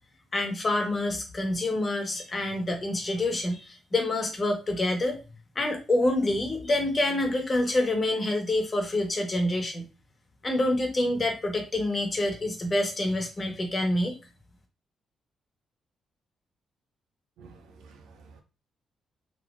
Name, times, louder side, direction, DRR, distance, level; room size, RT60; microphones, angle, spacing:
voice 1, 0.3-5.2 5.5-9.8 10.4-14.1, left 1 dB, 40° left, 1.3 m, -27 dB
voice 2, 17.4-18.4, right 4 dB, 80° right, 0.7 m, -51 dB
3.9 x 3.0 x 2.4 m
supercardioid pair, 55°, 0 cm